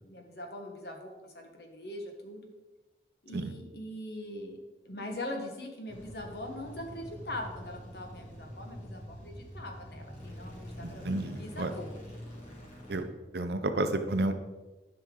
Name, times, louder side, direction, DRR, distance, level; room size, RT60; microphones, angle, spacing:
voice 1, 0.0-2.5 3.2-4.6 4.8-11.9, left 1 dB, 65° left, 3 dB, 1.5 m, -42 dB
sound 1, 5.9-13.0, equal, 40° left, 3.0 m, -45 dB
voice 2, 10.8-11.7 12.9-13.0 13.3-14.3, right 2 dB, 70° right, 8 dB, 0.7 m, -31 dB
11.0 x 5.7 x 3.9 m, 1.2 s
head